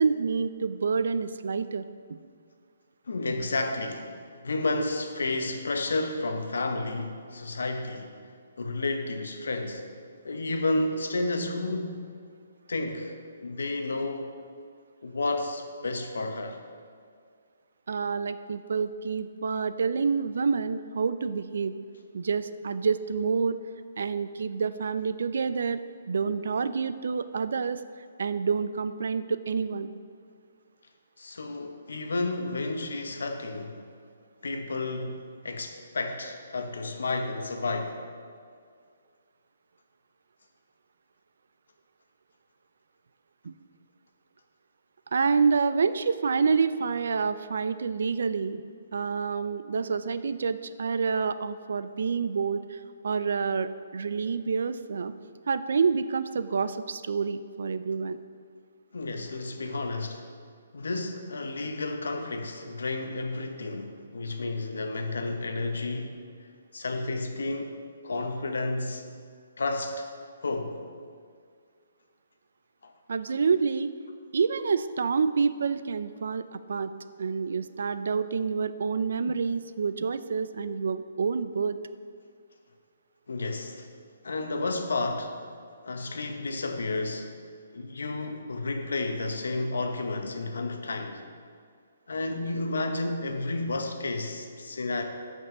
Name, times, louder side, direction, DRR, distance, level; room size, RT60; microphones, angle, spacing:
voice 1, 0.0-1.8 2.1-2.2 17.9-21.7 22.1-23.5 24.0-25.8 26.1-27.8 28.2-29.9 43.4-43.5 45.1-48.6 48.9-55.1 55.5-58.2 73.1-73.9 74.3-76.9 77.2-81.8, right 5 dB, 65° right, 13 dB, 0.4 m, -28 dB
voice 2, 3.1-8.1 8.6-9.8 10.2-12.0 12.7-13.1 13.4-14.4 15.0-16.6 31.2-33.8 34.4-38.0 58.9-60.2 60.7-66.2 66.7-67.8 68.0-69.0 69.6-70.1 70.4-70.8 72.8-72.9 83.3-83.9 84.2-85.4 85.8-87.3 87.7-91.2 92.1-95.0, left 2 dB, 90° left, 5 dB, 0.9 m, -31 dB
6.1 x 5.4 x 6.7 m, 2.1 s
hypercardioid pair, 165°, 0 cm